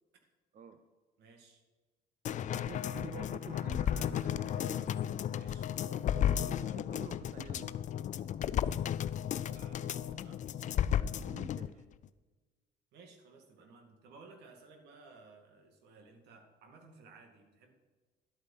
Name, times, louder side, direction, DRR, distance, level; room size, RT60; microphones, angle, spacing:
voice 1, 1.2-1.6 5.3-5.8 9.5-10.4 12.9-17.7, right 4 dB, 80° right, 4 dB, 2.3 m, -57 dB
sound 1, 2.2-11.7 12.0-12.1, left 10 dB, 45° left, 0.5 m, -34 dB
voice 2, 2.5-4.9 6.0-7.8 11.1-11.8, right 7 dB, 45° right, 8 dB, 0.7 m, -49 dB
12.0 x 8.5 x 5.7 m, 1.3 s
cardioid pair, 110°, 17 cm